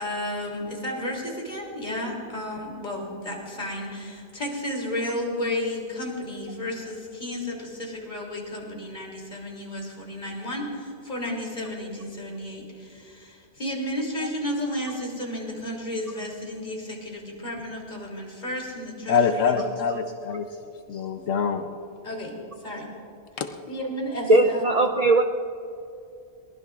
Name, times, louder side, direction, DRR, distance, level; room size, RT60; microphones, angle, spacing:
voice 1, 0.0-19.6 20.9-21.0 22.0-22.3 22.6-22.9 23.6-24.9, left 1 dB, 35° left, -2 dB, 3.1 m, -32 dB
voice 2, 19.1-20.5 20.9-21.7 23.4-23.5, left 6 dB, 80° left, 7 dB, 1.1 m, -24 dB
voice 3, 24.3-25.2, right 2 dB, 50° right, 5 dB, 0.5 m, -18 dB
23.0 x 18.5 x 2.4 m, 2.6 s
omnidirectional pair, 1.3 m